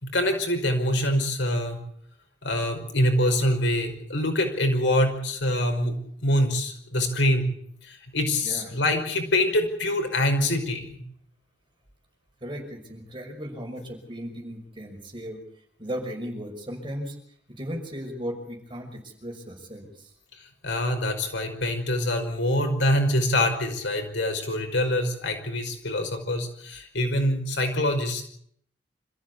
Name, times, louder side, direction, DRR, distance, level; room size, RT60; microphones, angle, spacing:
voice 1, 0.0-1.8 2.4-7.5 7.8-11.0 20.3-28.2, left 1 dB, 85° left, 5 dB, 5.3 m, -25 dB
voice 2, 8.4-8.8 12.4-15.4 15.8-17.2 17.5-20.1, equal, 25° right, 2 dB, 5.9 m, -36 dB
26.5 x 15.0 x 8.4 m, 0.66 s
head